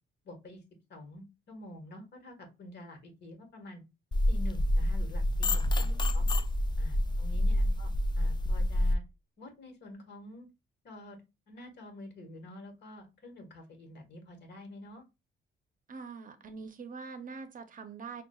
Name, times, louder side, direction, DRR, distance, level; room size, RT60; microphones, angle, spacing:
voice 1, 0.2-0.6 0.9-3.8 4.3-6.3 6.8-7.9 8.2-9.0 9.4-10.5 10.8-11.2 11.5-15.0, left 1 dB, 60° left, 1.5 m, -48 dB
sound 1, 4.1-9.0, left 1 dB, 20° left, 0.4 m, -28 dB
voice 2, 5.7-6.3 7.0-7.1 7.5-7.8 15.9-18.2, right 5 dB, 45° right, 0.7 m, -45 dB
5.9 x 2.4 x 2.3 m
cardioid pair, 90°, 20 cm